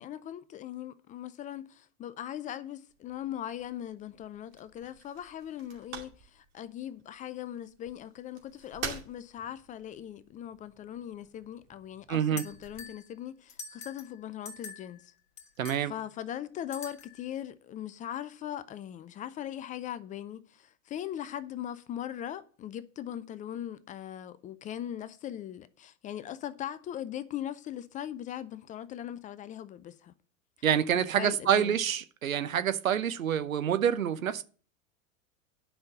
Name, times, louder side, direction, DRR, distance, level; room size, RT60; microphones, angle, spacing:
voice 1, 0.0-15.1 15.8-30.1 30.9-31.8, left 11 dB, 20° left, 0.4 m, -40 dB
sound 1, 2.9-12.8, right 6 dB, 40° right, 2.5 m, -48 dB
voice 2, 12.1-12.4 15.6-15.9 30.6-34.4, right 9 dB, 80° right, 0.9 m, -27 dB
sound 2, 12.4-13.0 13.5-14.1 14.5-15.0 15.4-15.9 16.7-17.2, left 5 dB, 65° left, 2.0 m, -44 dB
10.0 x 5.5 x 7.6 m
figure-of-eight pair, 90°, 40 cm